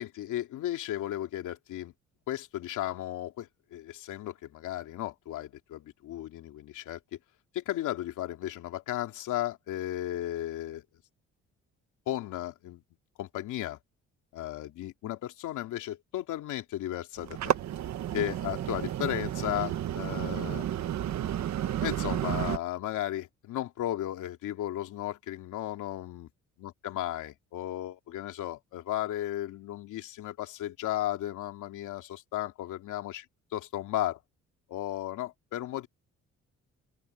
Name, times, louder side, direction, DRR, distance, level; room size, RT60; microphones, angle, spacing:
voice 1, 0.0-1.9 2.3-7.0 7.5-10.8 12.1-12.8 13.2-13.8 14.3-17.6 18.1-20.6 21.8-26.3 26.6-33.2 33.5-34.2 34.7-35.9, left 13 dB, 85° left, 2.8 m, -35 dB
sound 1, 17.2-22.6, right 11 dB, 65° right, 1.3 m, -32 dB
open air
cardioid pair, 90°, 30 cm